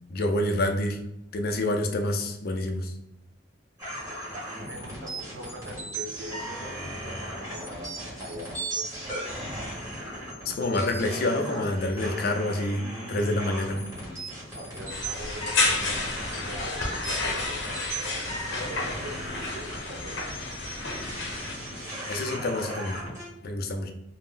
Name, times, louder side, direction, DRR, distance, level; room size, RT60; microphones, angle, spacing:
voice 1, 0.1-1.0 1.3-2.9 10.4-13.8 22.1-23.0 23.4-23.9, left 1 dB, 55° left, 4 dB, 0.4 m, -27 dB
sound 1, 3.8-23.3, right 1 dB, 15° right, 1.3 m, -37 dB
voice 2, 4.1-8.5 14.5-20.2, equal, 85° right, 1 dB, 0.7 m, -42 dB
sound 2, 14.9-21.6, left 3 dB, 80° left, 0.7 m, -31 dB
2.5 x 2.0 x 3.6 m, 0.85 s
head